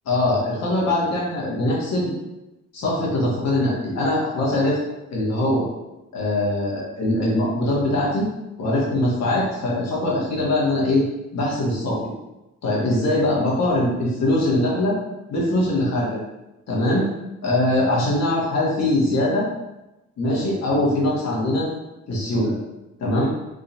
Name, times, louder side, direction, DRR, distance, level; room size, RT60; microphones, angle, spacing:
voice 1, 0.0-2.1 2.7-4.8 5.1-5.7 6.1-8.3 8.6-11.0 11.3-12.1 12.6-15.0 15.3-16.2 16.7-17.1 17.4-19.5 20.2-21.7 22.1-22.6 23.0-23.3, left 1 dB, 60° left, -4 dB, 1.3 m, -22 dB
3.6 x 2.4 x 2.8 m, 0.98 s
cardioid pair, 90°, 30 cm